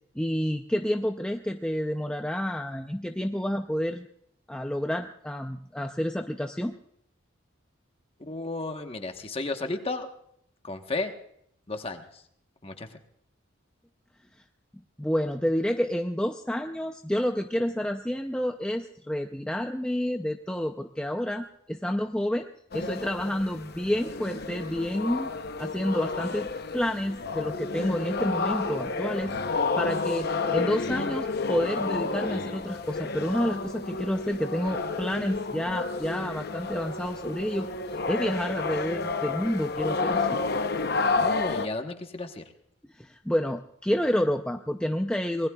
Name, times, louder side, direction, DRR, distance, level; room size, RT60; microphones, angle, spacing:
voice 1, 0.2-4.1 4.5-6.7 15.0-22.5 22.7-25.3 25.6-26.5 26.7-29.3 29.8-37.7 38.1-40.4 42.9-45.5, equal, 5° left, 4 dB, 0.5 m, -29 dB
voice 2, 8.3-10.1 10.6-11.1 11.7-12.2 12.6-13.0 41.2-42.4, left 2 dB, 30° left, 6 dB, 1.1 m, -33 dB
sound 1, 22.7-41.7, left 3 dB, 50° left, 0.8 m, -30 dB
25.5 x 19.5 x 2.3 m, 0.71 s
head